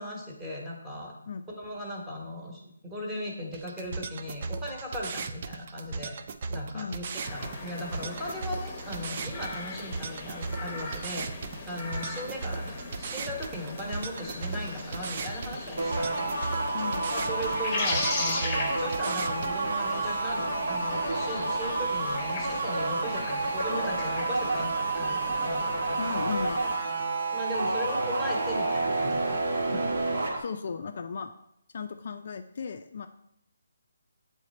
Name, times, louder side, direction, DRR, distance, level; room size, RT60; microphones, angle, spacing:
voice 1, 0.0-1.1 1.6-6.1 6.5-16.8 17.1-25.7 27.3-29.4 29.7-30.2, equal, 10° right, -2 dB, 1.1 m, -38 dB
sound 1, 3.5-19.5, right 4 dB, 40° right, 0.3 m, -37 dB
sound 2, 7.2-26.7, left 3 dB, 20° left, 0.9 m, -38 dB
sound 3, 15.8-30.4, right 3 dB, 60° right, 1.2 m, -29 dB
voice 2, 16.7-17.3 26.0-26.6 30.3-31.3 31.7-33.1, left 5 dB, 50° left, 7 dB, 0.4 m, -36 dB
7.6 x 3.3 x 4.2 m, 0.77 s
hypercardioid pair, 160°, 0 cm